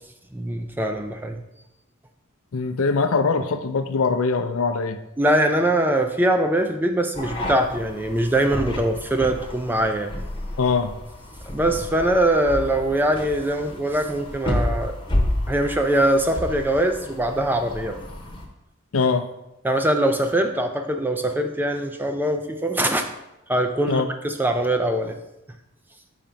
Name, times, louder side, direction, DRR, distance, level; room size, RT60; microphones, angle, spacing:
voice 1, 0.3-1.4 5.2-10.1 11.5-18.0 19.6-23.1 23.5-25.2, right 1 dB, 10° right, 5 dB, 0.3 m, -22 dB
voice 2, 2.5-5.0 10.6-10.9 18.9-19.3 23.9-24.1, left 4 dB, 75° left, 9 dB, 0.5 m, -22 dB
sound 1, 7.1-18.4, left 1 dB, 20° left, 0.9 m, -31 dB
5.7 x 4.4 x 5.1 m, 0.91 s
head